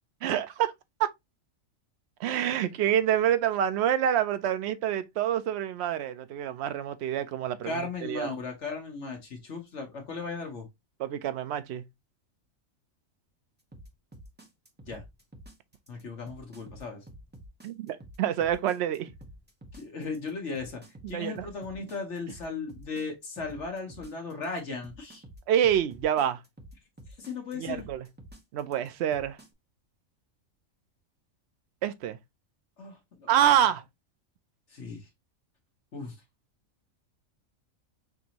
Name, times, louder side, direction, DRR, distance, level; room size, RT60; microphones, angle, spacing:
voice 1, 0.2-0.7 1.0-1.1 2.2-8.3 11.0-11.8 17.6-19.1 21.0-21.5 25.5-26.4 27.5-28.0 28.5-29.4 31.8-32.2 33.3-33.8, right 10 dB, 65° right, 0.7 m, -27 dB
voice 2, 7.6-10.7 14.9-15.0 15.9-17.0 19.7-20.8 21.1-25.2 27.2-27.9 32.8-33.3 34.7-35.1 35.9-36.2, left 4 dB, 60° left, 1.3 m, -36 dB
sound 1, 13.7-29.5, right 1 dB, 10° right, 0.6 m, -49 dB
6.0 x 2.6 x 2.9 m
omnidirectional pair, 1.4 m